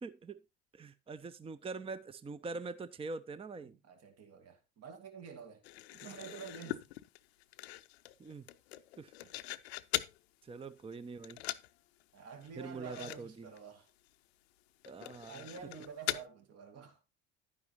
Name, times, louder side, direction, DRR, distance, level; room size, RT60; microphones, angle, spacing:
voice 1, 0.0-0.4 0.7-3.7 8.2-8.5 9.0-9.1 10.4-11.4 12.6-13.5 14.9-15.4, right 4 dB, 15° right, 0.7 m, -44 dB
voice 2, 3.6-5.6 5.9-6.9 9.2-9.4 12.1-13.9 15.3-17.0, right 6 dB, 50° right, 2.3 m, -49 dB
sound 1, 5.6-10.2 10.6-11.0 11.2-11.7 12.0-12.1 12.4-12.5 12.8-13.2 13.5-13.6 14.1-14.2 14.8-16.3, left 17 dB, 70° left, 0.6 m, -41 dB
11.0 x 9.6 x 3.0 m
figure-of-eight pair, 60°, 32 cm